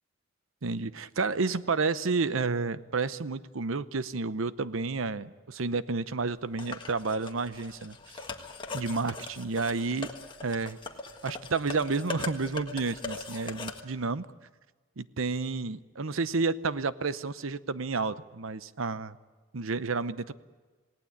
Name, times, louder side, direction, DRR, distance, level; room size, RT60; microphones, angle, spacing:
voice 1, 0.6-8.0 8.7-10.1 10.4-10.8 11.2-14.3 15.0-19.2 19.5-20.3, right 4 dB, 80° right, 15 dB, 0.8 m, -30 dB
sound 1, 6.6-13.8, left 4 dB, 25° left, 1.6 m, -40 dB
27.5 x 18.0 x 8.6 m, 1.4 s
head